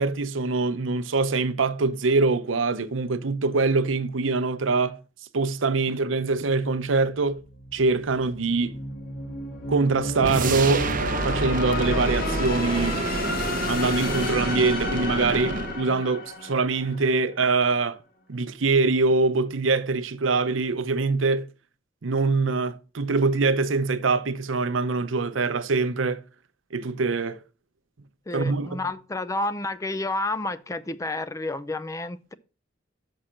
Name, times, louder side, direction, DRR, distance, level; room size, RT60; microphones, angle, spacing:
voice 1, 0.0-5.0 5.3-7.4 7.7-8.7 9.7-10.9 11.2-13.0 13.7-18.0 18.3-21.5 22.0-26.2 26.7-27.4 28.3-28.8, right 3 dB, 85° right, 0.7 m, -24 dB
sound 1, 7.2-17.4, left 2 dB, 50° left, 1.5 m, -33 dB
sound 2, 10.2-15.8, right 2 dB, 45° right, 0.7 m, -28 dB
voice 2, 28.3-32.3, left 2 dB, 15° left, 0.4 m, -30 dB
6.4 x 6.2 x 5.6 m
head